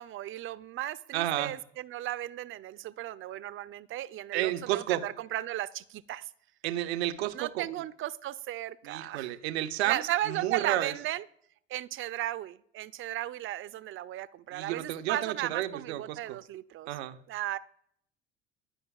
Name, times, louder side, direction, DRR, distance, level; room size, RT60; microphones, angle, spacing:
voice 1, 0.0-6.3 7.3-9.3 9.8-11.2 11.7-16.9 17.3-17.6, right 13 dB, 40° right, 0.4 m, -35 dB
voice 2, 1.1-1.5 4.3-5.0 6.6-7.7 8.8-10.9 14.5-16.4 16.9-17.2, right 14 dB, 85° right, 0.6 m, -31 dB
11.5 x 5.0 x 2.3 m
hypercardioid pair, 75°, 32 cm